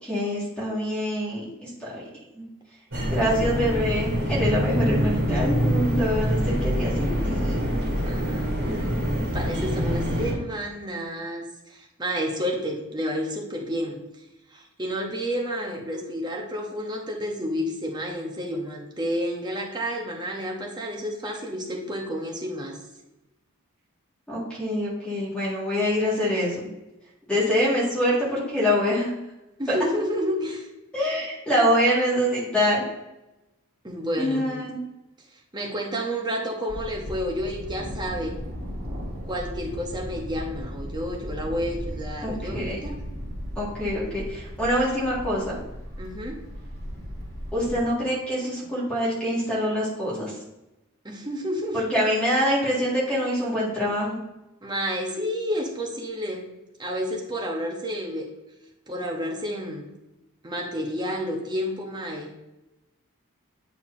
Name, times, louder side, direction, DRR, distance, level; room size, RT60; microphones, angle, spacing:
voice 1, 0.0-2.0 2.3-2.4 3.1-7.6 24.3-26.7 27.3-29.1 29.7-29.8 30.9-32.8 34.2-34.7 42.2-42.7 43.6-45.6 47.5-50.3 51.7-54.2, equal, 5° left, -8 dB, 1.9 m, -25 dB
sound 1, 2.9-10.3, equal, 60° right, 2.0 m, -25 dB
voice 2, 8.0-14.0 14.5-22.8 29.6-30.7 33.8-34.6 35.5-38.4 39.3-43.0 46.0-46.4 51.0-51.8 54.6-56.5 56.8-58.3 58.9-59.9 60.4-62.3, equal, 20° right, 0 dB, 0.9 m, -30 dB
Thunder, 36.7-47.9, equal, 45° right, 2.3 m, -36 dB
8.7 x 4.5 x 2.7 m, 0.97 s
head